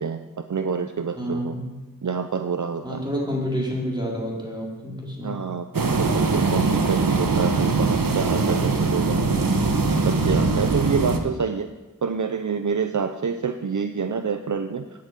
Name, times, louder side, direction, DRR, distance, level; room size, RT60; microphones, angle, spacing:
voice 1, 0.0-1.5 2.0-3.0 5.2-5.7 6.0-9.5 10.0-11.7 12.0-14.8, right 6 dB, 60° right, 8 dB, 0.7 m, -27 dB
voice 2, 1.2-1.8 2.8-5.3, equal, 15° right, -3 dB, 4.2 m, -29 dB
sound 1, 5.7-11.2, right 3 dB, 80° right, 1.2 m, -22 dB
9.1 x 8.6 x 8.1 m, 1.1 s
wide cardioid pair, 45°, 34 cm